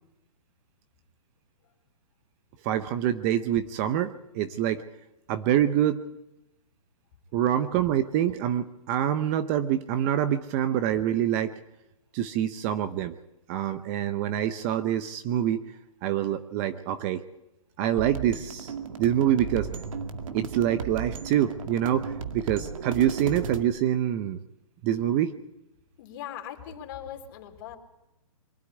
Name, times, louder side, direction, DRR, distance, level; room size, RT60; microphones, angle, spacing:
voice 1, 2.6-4.8 5.3-6.0 7.3-11.5 12.1-13.2 13.5-17.2 17.8-18.7 19.0-19.7 20.3-24.4 24.8-25.3, right 11 dB, 25° right, 11 dB, 0.7 m, -26 dB
sound 1, 18.0-23.6, right 6 dB, 70° right, 2.2 m, -35 dB
voice 2, 26.0-27.8, left 10 dB, 40° left, 3 dB, 3.5 m, -40 dB
23.5 x 13.0 x 9.8 m, 0.92 s
hypercardioid pair, 160°, 18 cm